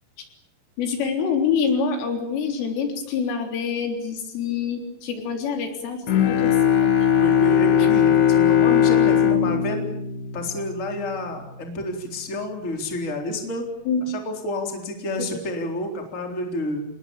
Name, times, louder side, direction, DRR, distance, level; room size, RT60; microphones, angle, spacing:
voice 1, 0.8-7.1 7.8-7.9 13.9-14.0 15.2-15.4, left 6 dB, 75° left, 4 dB, 6.1 m, -26 dB
Bowed string instrument, 6.1-11.2, left 9 dB, 55° left, 2.6 m, -19 dB
voice 2, 7.2-9.9 10.3-13.6 14.0-16.8, left 1 dB, 15° left, 3 dB, 3.3 m, -29 dB
27.5 x 20.5 x 8.7 m, 0.78 s
omnidirectional pair, 5.9 m